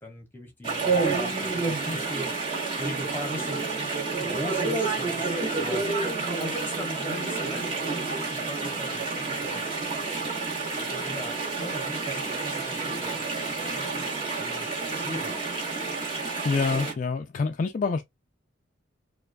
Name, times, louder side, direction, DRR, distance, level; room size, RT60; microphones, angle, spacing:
voice 1, 0.0-2.5 2.8-3.6 4.0-5.9 6.3-9.6 10.8-14.7 14.9-15.4, equal, 10° left, 1.2 m, -39 dB
Chatter / Stream, 0.6-16.9, right 3 dB, 30° right, 1.8 m, -29 dB
voice 2, 16.4-18.0, left 4 dB, 45° left, 0.3 m, -26 dB
4.4 x 2.4 x 2.2 m
head